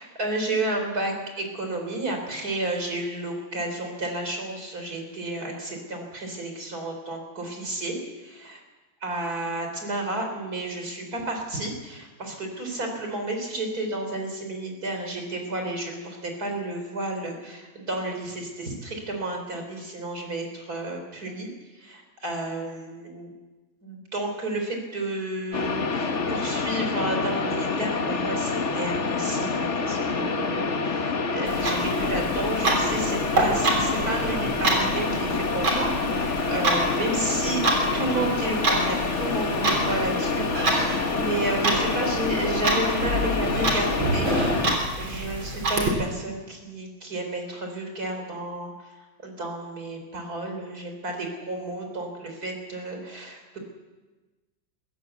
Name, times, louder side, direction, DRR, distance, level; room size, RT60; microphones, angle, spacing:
voice 1, 0.0-8.6 9.0-21.5 21.7-23.3 23.8-37.6 37.9-44.3 44.6-53.6, right 2 dB, 50° right, 3 dB, 4.5 m, -32 dB
sound 1, 25.5-44.8, left 4 dB, 40° left, 1.4 m, -27 dB
Clock, 31.5-45.9, right 2 dB, 85° right, 4.2 m, -27 dB
22.0 x 15.5 x 8.2 m, 1.2 s
omnidirectional pair, 2.1 m